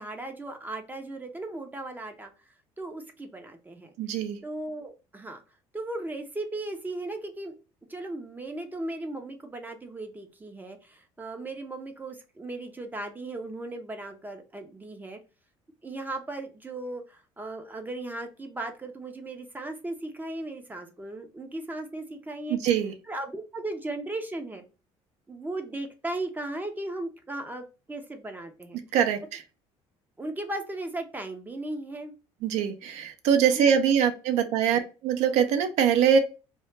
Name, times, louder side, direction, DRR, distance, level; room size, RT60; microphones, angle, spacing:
voice 1, 0.0-2.3 2.8-3.9 4.4-5.4 5.7-7.5 7.9-15.2 15.8-22.6 23.0-24.6 25.3-28.8 30.2-32.1 33.5-33.8 34.7-34.8, right 2 dB, 15° right, 5 dB, 0.4 m, -37 dB
voice 2, 4.0-4.4 22.5-22.9 28.9-29.4 32.4-36.2, right 8 dB, 75° right, 8 dB, 0.4 m, -23 dB
2.1 x 2.0 x 3.1 m, 0.32 s
supercardioid pair, 95°, 12 cm